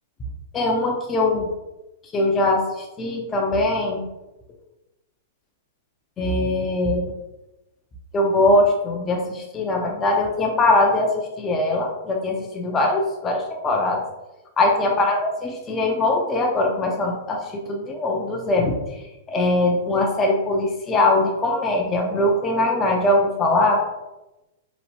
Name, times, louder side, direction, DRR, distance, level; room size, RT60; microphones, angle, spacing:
voice 1, 0.5-1.5 2.1-4.0 6.2-7.0 8.1-14.0 14.6-18.7 19.3-23.8, left 2 dB, 20° left, 0 dB, 0.4 m, -21 dB
2.9 x 2.0 x 2.8 m, 0.97 s
hypercardioid pair, 135°, 0 cm